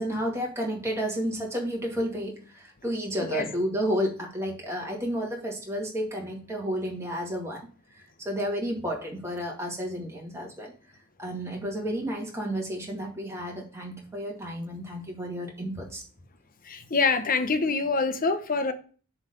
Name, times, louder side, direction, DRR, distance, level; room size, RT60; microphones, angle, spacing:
voice 1, 0.0-10.7 11.2-16.0, equal, 10° right, 2.2 m, -31 dB
voice 2, 16.7-18.7, left 4 dB, 40° left, 0.9 m, -25 dB
7.1 x 4.0 x 6.6 m
head